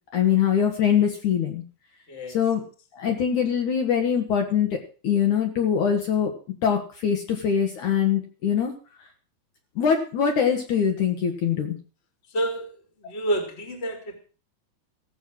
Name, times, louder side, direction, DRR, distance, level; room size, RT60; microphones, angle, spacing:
voice 1, 0.1-1.6 2.3-2.6 2.9-6.3 6.6-8.7 9.8-11.8, left 8 dB, 60° left, 3 dB, 2.7 m, -23 dB
voice 2, 12.3-12.7 13.0-14.2, right 1 dB, 20° left, 5 dB, 2.3 m, -28 dB
16.0 x 7.9 x 6.2 m, 0.38 s
omnidirectional pair, 4.4 m